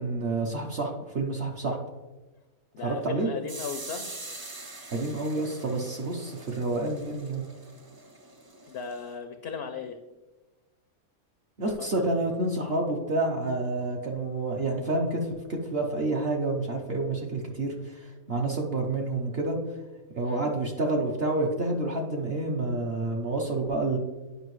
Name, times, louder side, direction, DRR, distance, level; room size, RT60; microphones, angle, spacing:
voice 1, 0.0-1.8 2.8-3.3 4.9-7.4 11.6-19.6 20.2-24.0, right 2 dB, 50° right, 0 dB, 0.9 m, -29 dB
voice 2, 2.7-4.1 8.7-10.0 11.8-11.9 20.2-20.4, left 5 dB, 65° left, 7 dB, 0.6 m, -36 dB
sound 1, 3.5-9.1, right 2 dB, 30° right, 0.4 m, -44 dB
9.5 x 5.5 x 3.1 m, 1.2 s
omnidirectional pair, 1.5 m